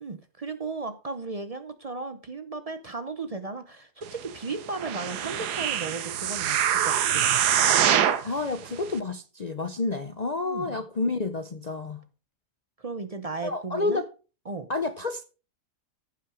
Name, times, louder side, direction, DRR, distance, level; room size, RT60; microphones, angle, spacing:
voice 1, 0.0-7.3 10.4-10.8 12.8-14.0 14.5-14.7, right 3 dB, 50° right, 0.4 m, -35 dB
sound 1, 4.7-8.3 8.9-9.0, right 10 dB, 80° right, 1.4 m, -24 dB
voice 2, 8.2-12.0 13.4-14.1 14.7-15.2, left 3 dB, 60° left, 0.4 m, -29 dB
14.5 x 5.8 x 4.8 m
omnidirectional pair, 1.7 m